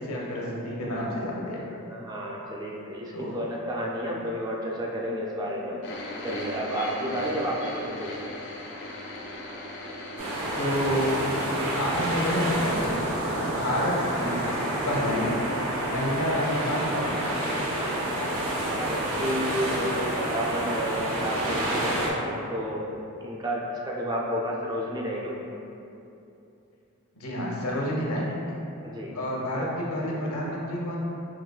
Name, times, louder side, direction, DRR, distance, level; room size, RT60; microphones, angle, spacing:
voice 1, 0.0-1.6 3.1-3.4 10.6-11.2 11.8-13.0 13.5-14.4 14.9-15.4 15.8-17.4 27.2-28.6 29.1-31.0, equal, 85° left, -3 dB, 0.7 m, -29 dB
voice 2, 1.7-5.8 6.2-8.3 18.5-25.4 28.8-29.2, equal, 20° right, -3 dB, 0.4 m, -31 dB
sound 1, 5.8-12.5 12.8-13.0 13.7-13.8, left 1 dB, 50° left, 0.4 m, -38 dB
sound 2, 10.2-22.1, right 1 dB, 65° right, 0.6 m, -28 dB
3.8 x 2.9 x 2.2 m, 2.7 s
head